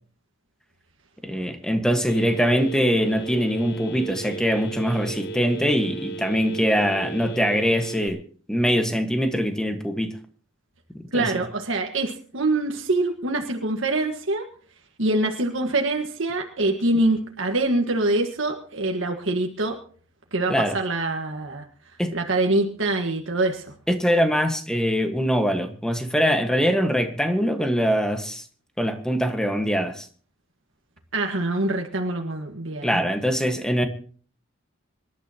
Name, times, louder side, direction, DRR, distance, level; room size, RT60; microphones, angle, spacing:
voice 1, 1.2-8.2 8.5-10.2 11.1-11.4 20.5-20.8 22.0-22.1 23.9-28.4 28.8-30.1 32.8-33.8, equal, 5° left, 1.5 m, -23 dB
Telephone, 2.1-8.1, right 4 dB, 55° left, 1.5 m, -35 dB
voice 2, 11.1-14.5 15.0-19.8 20.3-21.6 22.1-23.7 31.1-33.0, right 2 dB, 75° right, 1.6 m, -24 dB
25.5 x 12.0 x 2.9 m
head